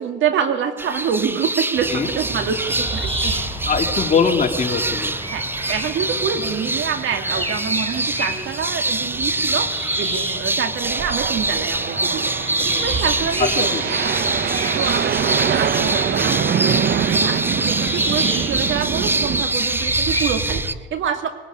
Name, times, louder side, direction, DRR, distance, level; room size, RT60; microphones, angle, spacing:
voice 1, 0.0-3.4 5.3-9.7 10.0-13.9 14.6-21.3, right 7 dB, 75° right, 7 dB, 2.4 m, -26 dB
sound 1, 0.8-20.7, right 2 dB, 10° right, 0.7 m, -25 dB
sound 2, 1.7-20.6, right 1 dB, 25° right, 7.2 m, -31 dB
voice 2, 3.7-5.1 13.4-13.8, left 5 dB, 40° left, 2 dB, 3.3 m, -21 dB
sound 3, 10.8-19.4, right 8 dB, 55° right, 1.1 m, -24 dB
20.5 x 19.0 x 9.7 m, 1.3 s
cardioid pair, 90°, 20 cm